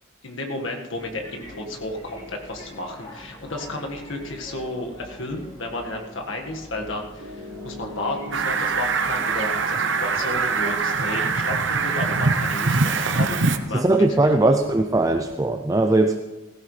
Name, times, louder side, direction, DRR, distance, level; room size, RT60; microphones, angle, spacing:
voice 1, 0.2-14.1 14.4-14.6, left 1 dB, 65° left, 2 dB, 1.7 m, -32 dB
sound 1, 0.9-15.4, left 1 dB, 20° left, 4.1 m, -44 dB
Piano, 7.2-12.2, left 1 dB, 75° right, 2.0 m, -41 dB
Fowl, 8.3-13.6, right 4 dB, 60° right, 0.8 m, -23 dB
voice 2, 13.7-16.2, right 2 dB, 15° right, 6 dB, 0.4 m, -19 dB
16.5 x 15.5 x 3.3 m, 1.1 s
head